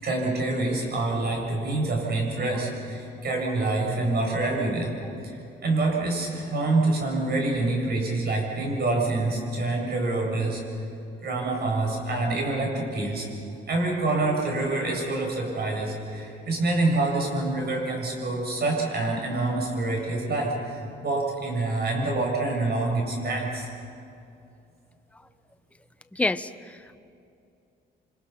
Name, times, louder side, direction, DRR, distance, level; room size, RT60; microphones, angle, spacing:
voice 1, 0.0-10.6 11.2-13.3 13.7-23.7, right 2 dB, 55° right, 0 dB, 7.8 m, -26 dB
voice 2, 26.1-27.0, left 2 dB, 5° left, 10 dB, 0.7 m, -28 dB
29.0 x 26.5 x 5.9 m, 2.6 s
cardioid pair, 90°, 20 cm